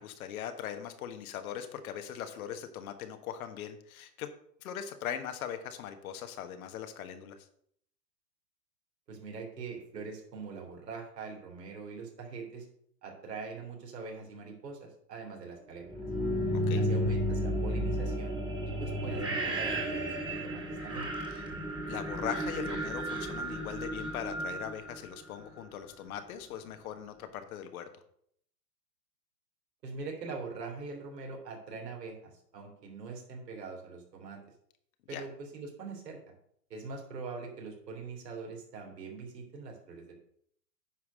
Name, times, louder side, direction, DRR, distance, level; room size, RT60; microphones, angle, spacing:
voice 1, 0.0-4.3 4.6-7.5 16.5-16.8 21.3-21.4 21.9-27.9 35.1-35.2, left 9 dB, 60° left, 8 dB, 1.4 m, -40 dB
voice 2, 9.1-12.7 13.0-16.0 16.7-18.4 18.6-21.1 29.8-34.4 35.1-36.2 36.7-40.1, right 4 dB, 75° right, 1 dB, 3.5 m, -43 dB
sound 1, 15.8-25.7, equal, 10° right, 1.9 m, -33 dB
9.5 x 4.7 x 6.4 m, 0.68 s
hypercardioid pair, 125°, 49 cm